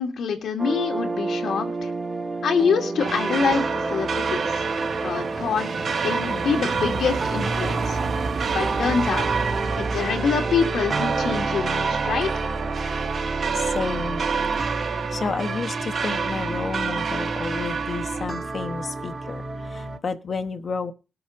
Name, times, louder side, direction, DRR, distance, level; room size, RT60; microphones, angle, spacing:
voice 1, 0.0-1.9 2.4-4.7 5.0-5.7 6.0-8.0 8.5-9.3 9.8-12.4, left 6 dB, 75° left, 3 dB, 2.4 m, -25 dB
sound 1, 0.6-20.0, right 2 dB, 20° right, 1.1 m, -30 dB
sound 2, 3.0-18.3, right 5 dB, 45° right, 1.0 m, -28 dB
voice 2, 13.5-14.3 15.1-20.9, left 4 dB, 40° left, 7 dB, 1.0 m, -31 dB
19.0 x 7.1 x 5.1 m, 0.32 s
wide cardioid pair, 150°, 0 cm